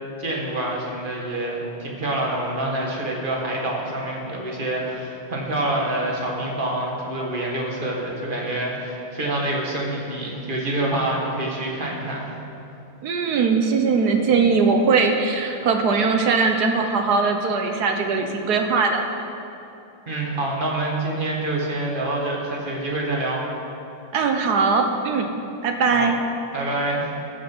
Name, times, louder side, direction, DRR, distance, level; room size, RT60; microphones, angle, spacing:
voice 1, 0.2-12.3 20.1-23.4 25.9-26.1 26.5-27.1, right 1 dB, 25° right, -2 dB, 1.7 m, -26 dB
voice 2, 13.0-19.0 24.1-25.3 25.6-26.1, right 4 dB, 60° right, 5 dB, 1.2 m, -20 dB
14.0 x 6.7 x 6.1 m, 2.8 s
omnidirectional pair, 2.2 m